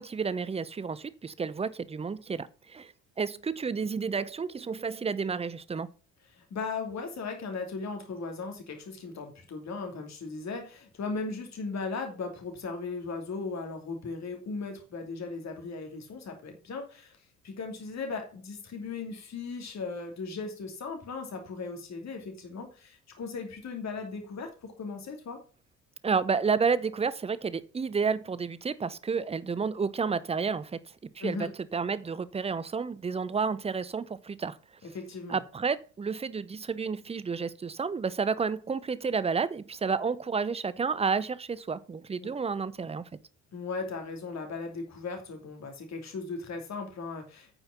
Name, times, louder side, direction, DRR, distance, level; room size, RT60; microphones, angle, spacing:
voice 1, 0.0-2.9 3.2-5.9 26.0-34.6 35.3-43.1, right 5 dB, 15° right, 0.6 m, -31 dB
voice 2, 6.3-17.2 17.4-25.4 31.2-31.5 34.8-35.4 42.2-42.3 43.5-47.6, left 4 dB, 40° left, 2.8 m, -37 dB
8.9 x 5.5 x 5.8 m
figure-of-eight pair, 50°, 41 cm